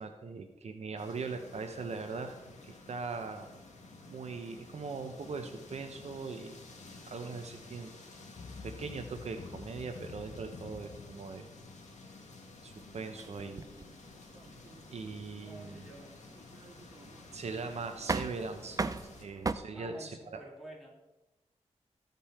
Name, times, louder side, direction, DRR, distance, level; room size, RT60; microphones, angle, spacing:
voice 1, 0.0-2.4 2.6-3.5 4.1-6.5 7.1-8.0 8.6-11.5 12.6-13.6 14.9-15.8 17.3-18.8 19.2-20.4, right 4 dB, 65° right, 6 dB, 0.8 m, -40 dB
sound 1, 1.0-19.3, left 2 dB, 80° left, 1.7 m, -52 dB
sound 2, 8.4-12.4, left 4 dB, 50° left, 0.5 m, -48 dB
sound 3, 13.1-19.5, right 4 dB, 30° right, 0.4 m, -39 dB
voice 2, 15.4-16.2 19.7-21.0, right 1 dB, ahead, -5 dB, 3.3 m, -50 dB
14.5 x 5.4 x 4.3 m, 1.0 s
wide cardioid pair, 90°, 12 cm